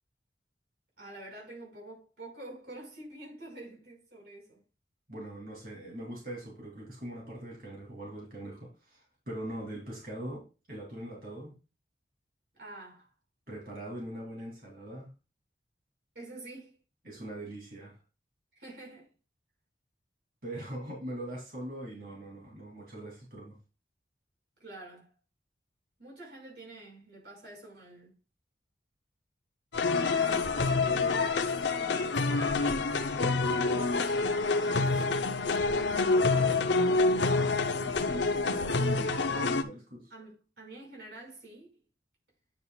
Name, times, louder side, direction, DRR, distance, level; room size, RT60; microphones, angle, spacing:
voice 1, 1.0-4.6 12.5-13.1 16.1-16.8 18.5-19.1 24.6-25.1 26.0-28.1 30.0-33.4 34.3-35.0 35.7-37.0 40.1-41.7, right 1 dB, 70° right, 5.1 m, -47 dB
voice 2, 5.1-11.5 13.5-15.1 17.0-18.0 20.4-23.6 37.7-40.1, right 1 dB, 50° right, 2.8 m, -42 dB
sound 1, 29.7-39.6, left 3 dB, 75° left, 0.7 m, -27 dB
9.2 x 7.6 x 2.3 m
head